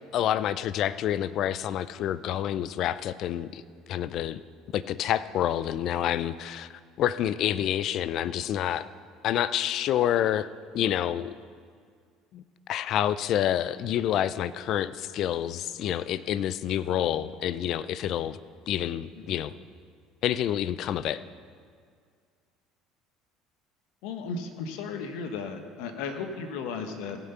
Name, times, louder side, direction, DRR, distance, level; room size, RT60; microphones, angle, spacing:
voice 1, 0.1-3.6 3.9-4.4 4.7-8.9 9.2-10.5 10.7-11.3 12.3-18.4 18.7-19.5 20.2-21.2, left 11 dB, 60° left, 16 dB, 0.4 m, -28 dB
voice 2, 24.0-27.2, left 5 dB, 75° left, 6 dB, 1.2 m, -35 dB
17.0 x 5.9 x 5.6 m, 2.1 s
supercardioid pair, 80°, 0 cm